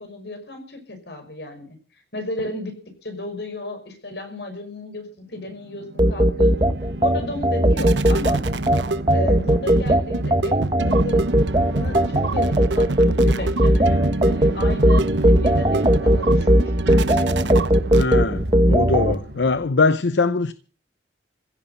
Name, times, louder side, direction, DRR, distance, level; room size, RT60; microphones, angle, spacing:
voice 1, 0.0-1.8 2.1-6.7 7.0-8.4 9.1-11.3 11.7-12.9 13.2-17.3, left 1 dB, 70° left, 5.5 m, -34 dB
sound 1, 5.6-18.5, right 2 dB, 90° right, 1.0 m, -27 dB
sound 2, 6.0-19.1, right 1 dB, 25° right, 1.3 m, -18 dB
sound 3, 6.7-19.7, equal, 70° right, 3.6 m, -38 dB
voice 2, 17.9-20.5, left 4 dB, 85° left, 0.7 m, -22 dB
16.0 x 9.9 x 8.0 m
head